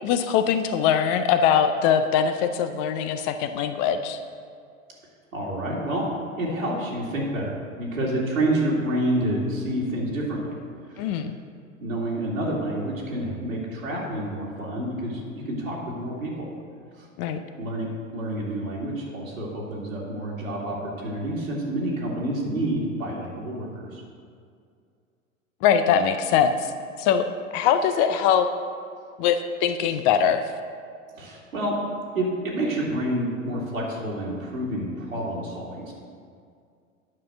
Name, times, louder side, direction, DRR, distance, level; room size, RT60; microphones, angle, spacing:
voice 1, 0.0-4.2 11.0-11.4 17.2-17.4 25.6-26.7 27.0-27.3 27.5-28.5 29.2-30.4, left 8 dB, 30° left, 9 dB, 0.4 m, -22 dB
voice 2, 5.3-6.0 6.4-10.6 10.9-11.2 11.8-16.3 17.0-17.1 17.6-17.9 18.1-24.0 31.2-31.8 32.1-35.9, right 1 dB, 80° right, -5 dB, 2.5 m, -28 dB
9.6 x 5.8 x 6.6 m, 2.2 s
figure-of-eight pair, 95°, 40 cm